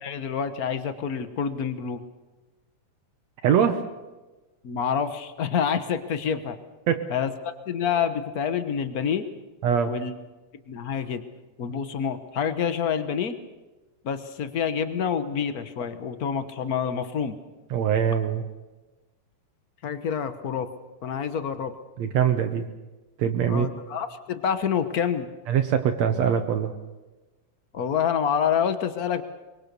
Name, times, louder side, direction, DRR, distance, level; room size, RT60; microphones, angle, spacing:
voice 1, 0.0-2.0 4.6-6.6 7.1-7.3 7.7-9.3 9.9-10.2 10.7-11.2 11.6-13.4 14.0-17.3 19.8-20.7 21.0-21.7 23.5-25.3 27.7-29.2, left 7 dB, 65° left, 10 dB, 0.9 m, -27 dB
voice 2, 3.4-3.8 6.9-7.1 9.6-9.9 17.7-18.4 22.0-22.7 23.2-23.7 25.5-26.7, right 8 dB, 70° right, 6 dB, 2.2 m, -23 dB
24.0 x 22.5 x 6.8 m, 1.2 s
omnidirectional pair, 3.4 m